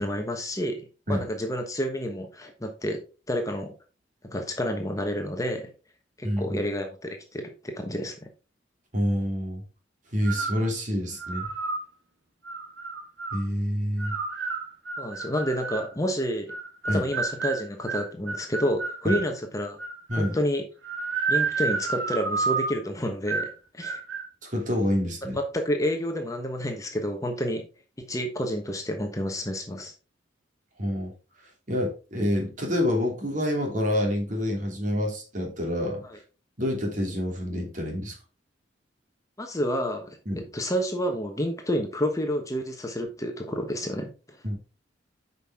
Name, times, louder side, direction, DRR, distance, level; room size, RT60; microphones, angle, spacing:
voice 1, 0.0-3.0 3.3-3.7 4.3-5.7 6.2-8.1 15.0-16.5 16.9-19.8 20.2-20.6 21.3-24.0 25.3-27.6 28.0-29.9 36.0-36.2 39.4-40.2 40.5-44.1, equal, 15° left, 4 dB, 1.1 m, -29 dB
voice 2, 6.2-6.6 8.9-9.6 10.1-11.5 13.3-14.1 16.9-17.1 19.0-19.2 20.1-20.4 24.4-25.4 30.8-31.1 31.7-36.0 36.6-38.2 40.2-40.4 44.4-44.6, equal, 40° right, 1 dB, 3.1 m, -27 dB
sound 1, 10.2-10.7 11.2-11.8 12.4-13.4 14.0-15.9 16.5-19.3 19.8-20.4 20.8-22.8 23.3-23.6 23.8-24.3, right 4 dB, 80° right, 1.8 m, -30 dB
9.1 x 5.5 x 3.7 m, 0.33 s
head